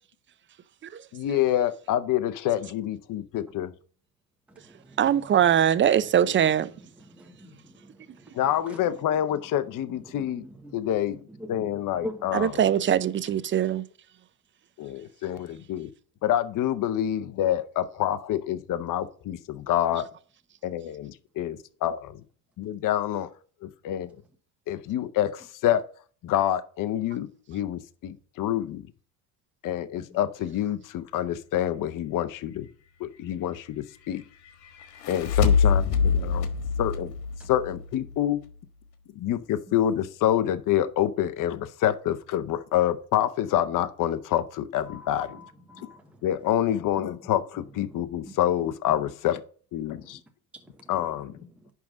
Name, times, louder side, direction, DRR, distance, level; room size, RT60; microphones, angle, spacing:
voice 1, 1.1-3.7 8.3-10.4 10.7-11.2 11.5-12.6 14.8-15.9 16.2-20.1 20.7-20.8 21.4-22.0 22.7-23.3 23.6-24.1 24.7-25.9 26.2-28.8 29.6-32.7 33.0-34.2 35.1-36.5 36.8-37.1 37.5-38.4 39.2-45.4 46.2-49.4 49.7-50.2 50.9-51.2, left 11 dB, 45° left, 0.8 m, -27 dB
voice 2, 5.0-6.7 12.3-13.8, right 9 dB, 25° right, 0.5 m, -22 dB
voice 3, 7.1-7.5 10.3-10.7 11.4-11.5 12.0-12.2 44.9-46.0, left 1 dB, 5° right, 1.1 m, -41 dB
sound 1, 34.8-38.2, left 6 dB, 85° left, 1.5 m, -24 dB
10.5 x 3.7 x 5.1 m
supercardioid pair, 95°, 44 cm